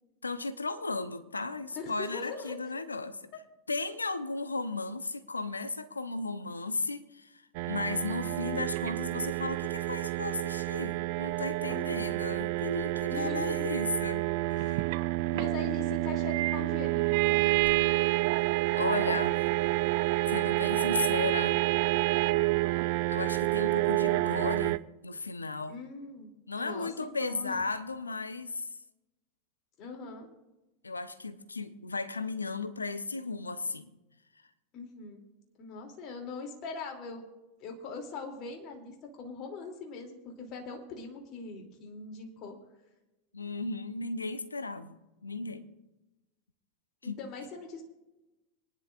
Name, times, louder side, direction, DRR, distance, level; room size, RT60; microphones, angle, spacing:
voice 1, 0.2-3.2 3.7-7.4 7.7-14.9 18.8-19.4 20.3-21.6 23.1-25.8 26.5-28.7 30.8-33.9 43.3-45.7 47.0-47.2, left 3 dB, 85° left, 0.8 m, -35 dB
voice 2, 1.7-2.6 11.7-12.1 13.1-13.7 15.3-17.5 25.7-27.6 29.8-30.3 34.7-35.2 35.6-37.2 37.6-42.5 47.0-47.8, left 4 dB, 45° left, 3.0 m, -41 dB
sound 1, 7.5-24.8, right 19 dB, 55° right, 0.4 m, -28 dB
25.0 x 10.5 x 2.6 m
figure-of-eight pair, 90°, 0 cm